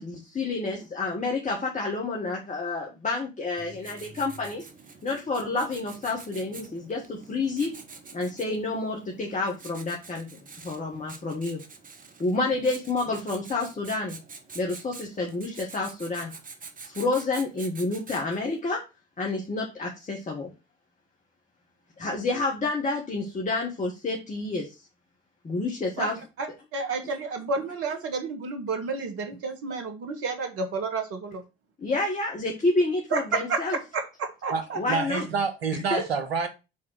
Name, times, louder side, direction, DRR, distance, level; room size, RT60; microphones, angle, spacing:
voice 1, 0.0-4.7 5.0-7.7 8.1-10.4 10.6-11.6 12.2-14.2 14.5-16.3 16.8-18.8 19.2-20.5 22.0-24.7 25.4-26.2 31.8-33.8 34.8-35.3 35.7-36.0, left 3 dB, 25° left, 1.6 m, -29 dB
Writing, 3.6-18.5, right 4 dB, 25° right, 1.1 m, -46 dB
voice 2, 26.7-31.4 33.1-33.2 33.5-33.6 33.9-35.0, right 4 dB, 50° right, 1.6 m, -31 dB
voice 3, 34.5-36.5, right 5 dB, 85° right, 1.0 m, -28 dB
4.8 x 4.2 x 5.8 m
figure-of-eight pair, 55°, 30 cm